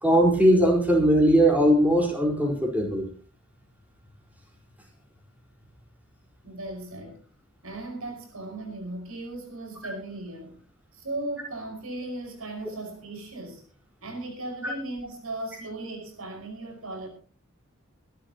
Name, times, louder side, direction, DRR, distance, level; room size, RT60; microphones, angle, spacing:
voice 1, 0.0-3.1 14.6-14.7, equal, 5° right, -1 dB, 4.7 m, -20 dB
voice 2, 6.4-7.2 7.6-10.6 10.9-13.6 14.0-17.1, right 2 dB, 75° right, 3 dB, 5.5 m, -37 dB
25.0 x 12.0 x 3.0 m, 0.38 s
head